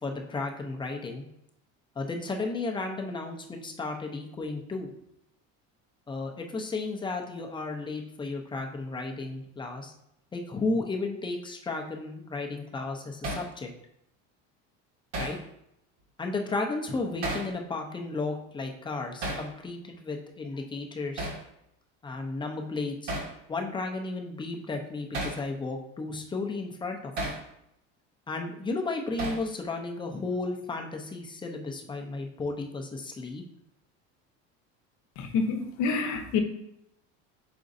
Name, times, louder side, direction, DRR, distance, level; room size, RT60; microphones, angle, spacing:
voice 1, 0.0-1.2 2.0-4.9 6.1-9.9 10.3-13.7 15.2-15.4 16.2-21.3 22.0-23.2 23.5-27.1 28.3-33.4, left 3 dB, 15° left, 2 dB, 0.6 m, -33 dB
Hammer, 13.2-13.5 15.1-15.4 17.2-17.5 19.2-19.5 21.2-21.4 23.1-23.3 25.1-25.4 27.2-27.4 29.2-29.5, right 1 dB, 50° right, 1.3 m, -33 dB
voice 2, 35.2-36.4, left 4 dB, 65° left, 7 dB, 0.8 m, -28 dB
5.1 x 3.8 x 2.6 m, 0.78 s
cardioid pair, 125°, 32 cm